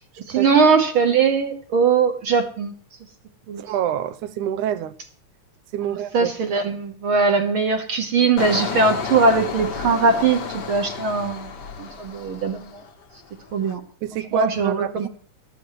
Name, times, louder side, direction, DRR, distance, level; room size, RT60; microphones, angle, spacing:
voice 1, 0.3-2.7 3.5-3.6 6.1-10.4 10.7-11.5 11.8-12.8 13.5-13.8 14.3-15.1, right 4 dB, 55° right, 1.7 m, -20 dB
voice 2, 3.6-4.9 5.7-6.3 14.0-15.1, right 11 dB, 85° right, 2.3 m, -26 dB
Engine, 8.4-13.0 13.4-13.7, left 5 dB, 50° left, 1.4 m, -31 dB
18.5 x 13.5 x 3.2 m
omnidirectional pair, 3.4 m